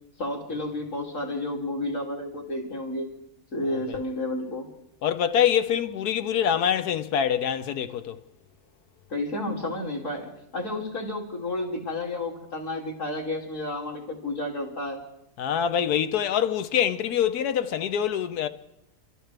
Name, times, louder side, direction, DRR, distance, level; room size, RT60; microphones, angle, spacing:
voice 1, 0.2-3.1 3.5-4.7 9.1-15.0, left 1 dB, 50° left, 3.1 m, -31 dB
voice 2, 5.0-8.2 15.4-18.5, left 9 dB, 75° left, 1.3 m, -25 dB
28.5 x 13.5 x 3.4 m
omnidirectional pair, 1.7 m